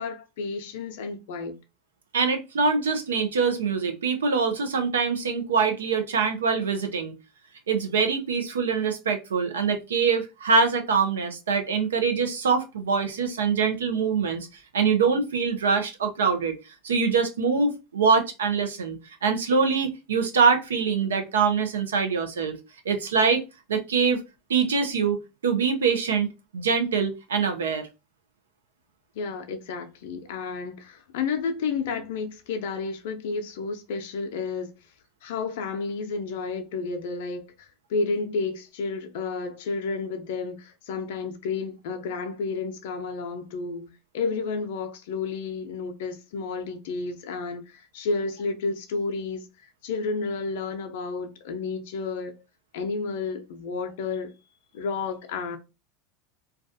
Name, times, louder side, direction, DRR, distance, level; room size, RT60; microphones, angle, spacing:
voice 1, 0.0-1.6 29.2-34.7 35.2-52.4 52.7-54.3 54.7-55.6, left 4 dB, 70° left, 0.4 m, -31 dB
voice 2, 2.1-7.1 7.7-14.5 14.7-16.5 16.8-22.6 22.9-23.4 23.7-24.2 24.5-25.2 25.4-26.3 26.5-27.9, right 5 dB, 90° right, 0.5 m, -24 dB
2.3 x 2.2 x 2.5 m
hypercardioid pair, 95°, 0 cm